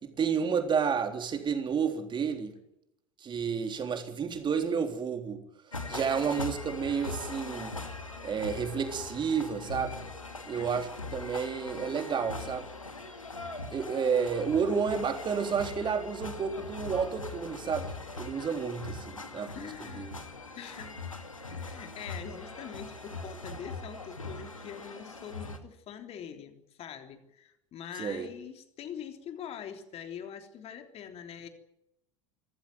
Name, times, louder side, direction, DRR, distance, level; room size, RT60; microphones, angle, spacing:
voice 1, 0.0-2.6 3.2-5.4 5.9-7.8 8.2-10.0 10.5-12.7 13.7-20.1 28.0-28.3, right 6 dB, 30° right, 6 dB, 3.8 m, -31 dB
sound 1, 5.7-25.6, left 3 dB, 85° left, 2.2 m, -41 dB
voice 2, 10.6-10.9 19.4-20.1 20.5-21.0 21.5-31.5, left 8 dB, 40° left, 6 dB, 3.5 m, -44 dB
26.0 x 14.5 x 9.4 m, 0.83 s
figure-of-eight pair, 75°, 17 cm